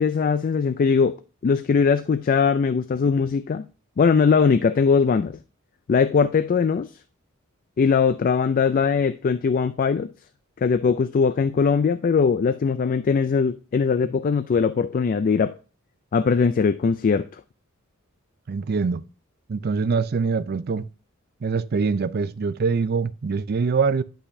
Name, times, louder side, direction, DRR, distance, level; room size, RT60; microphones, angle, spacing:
voice 1, 0.0-3.7 4.0-5.4 5.9-6.9 7.8-10.1 10.6-15.6 16.1-17.3, left 5 dB, 40° left, 0.3 m, -20 dB
voice 2, 18.5-19.0 19.5-20.9 21.4-24.0, right 5 dB, 45° right, 0.4 m, -24 dB
10.0 x 5.6 x 2.6 m
head